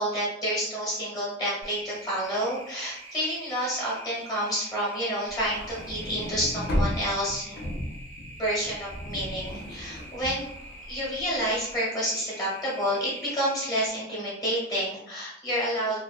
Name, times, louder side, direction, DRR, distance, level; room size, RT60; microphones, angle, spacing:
voice 1, 0.0-7.6 8.4-10.5 10.9-16.0, equal, 20° left, -7 dB, 0.9 m, -29 dB
sound 1, 1.6-13.9, right 1 dB, 35° right, 0.6 m, -46 dB
sound 2, 5.3-11.6, equal, 60° left, 0.5 m, -34 dB
2.4 x 2.2 x 2.3 m, 0.76 s
head